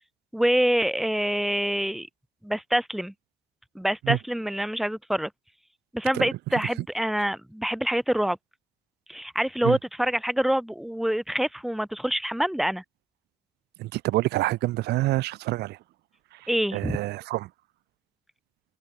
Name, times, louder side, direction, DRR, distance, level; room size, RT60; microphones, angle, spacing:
voice 1, 0.3-2.1 2.4-3.1 3.7-5.3 5.9-8.4 9.1-12.8 16.5-17.0, equal, ahead, 1.1 m, -26 dB
voice 2, 13.8-15.8 16.3-17.5, right 17 dB, 75° right, 0.7 m, -27 dB
open air
cardioid pair, 110°, 17 cm